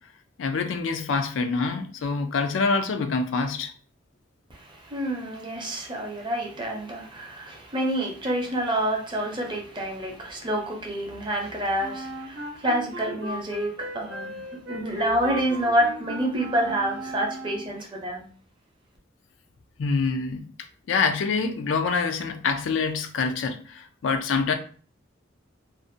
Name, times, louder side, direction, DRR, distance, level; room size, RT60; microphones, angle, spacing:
voice 1, 0.4-3.7 19.8-20.5 20.9-24.5, left 4 dB, 80° left, 0.4 m, -26 dB
voice 2, 4.5-18.3, right 1 dB, 25° right, 0.6 m, -28 dB
Wind instrument woodwind instrument, 11.8-17.8, equal, 65° right, 0.7 m, -36 dB
2.5 x 2.1 x 2.6 m
head